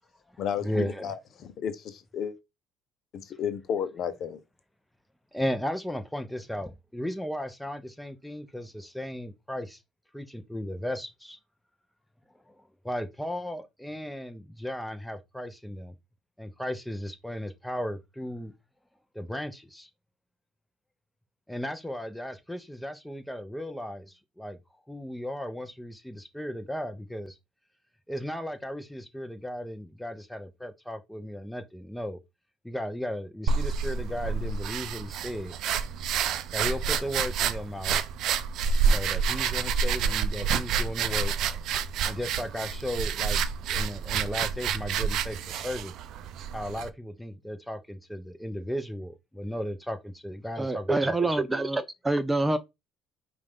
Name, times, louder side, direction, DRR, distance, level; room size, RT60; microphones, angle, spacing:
voice 1, 0.3-1.1 5.3-9.8 10.1-11.4 12.5-16.0 16.4-18.5 19.1-19.9 21.5-24.6 24.9-27.4 28.1-32.2 32.6-35.5 36.5-38.0 38.8-41.3 42.0-43.4 43.7-45.9 46.5-51.1, equal, 5° left, 0.8 m, -35 dB
voice 2, 1.0-2.3 3.1-4.4, left 8 dB, 55° left, 0.7 m, -32 dB
sound 1, 33.5-46.9, right 6 dB, 65° right, 0.5 m, -28 dB
voice 3, 50.6-52.6, right 2 dB, 15° right, 0.5 m, -26 dB
5.3 x 2.5 x 3.6 m
supercardioid pair, 95°, 0 cm